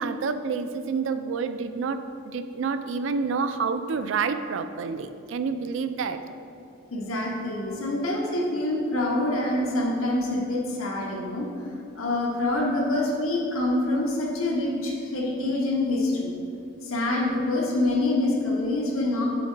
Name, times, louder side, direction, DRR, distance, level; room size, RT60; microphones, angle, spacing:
voice 1, 0.0-6.2, right 5 dB, 65° right, 10 dB, 0.3 m, -28 dB
voice 2, 6.9-11.5 12.0-16.4 16.8-19.2, left 2 dB, 90° left, -2 dB, 1.1 m, -26 dB
7.1 x 3.7 x 4.5 m, 2.6 s
head